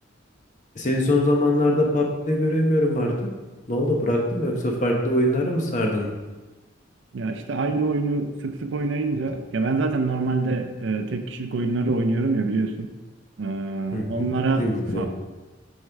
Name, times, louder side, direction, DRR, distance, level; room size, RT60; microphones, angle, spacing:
voice 1, 0.7-3.1 3.7-6.1 13.9-14.3 14.6-15.1, left 1 dB, 40° left, 0 dB, 1.0 m, -22 dB
voice 2, 7.1-12.9 13.4-14.6 14.9-15.1, right 3 dB, 70° right, 7 dB, 0.5 m, -25 dB
6.4 x 5.5 x 3.5 m, 1.2 s
head